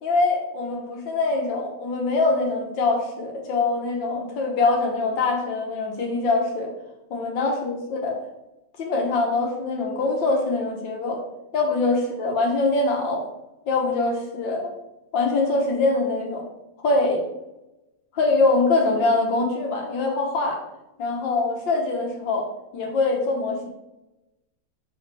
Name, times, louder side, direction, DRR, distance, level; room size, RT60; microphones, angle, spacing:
voice 1, 0.0-6.7 7.1-8.2 8.8-11.2 11.5-13.2 13.7-14.8 15.1-16.5 16.8-17.2 18.1-20.6 21.0-22.5 22.7-23.7, left 3 dB, 90° left, 1 dB, 1.9 m, -23 dB
5.6 x 5.2 x 3.3 m, 0.95 s
omnidirectional pair, 2.0 m